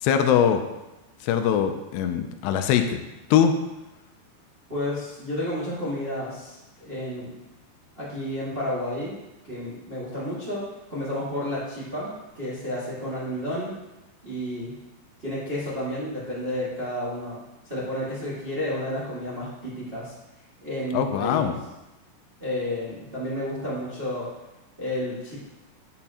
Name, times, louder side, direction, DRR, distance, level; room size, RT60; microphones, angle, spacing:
voice 1, 0.0-0.6 1.2-3.0 3.3-3.5 20.9-21.6, left 8 dB, 85° left, 7 dB, 2.7 m, -22 dB
voice 2, 4.7-7.3 8.0-9.1 9.4-10.6 10.9-13.8 14.2-14.7 15.2-17.4 17.6-20.1 20.6-21.5 22.4-24.3 24.8-25.4, left 1 dB, 85° right, -9 dB, 0.5 m, -31 dB
8.8 x 7.3 x 2.9 m, 1.0 s
omnidirectional pair, 4.8 m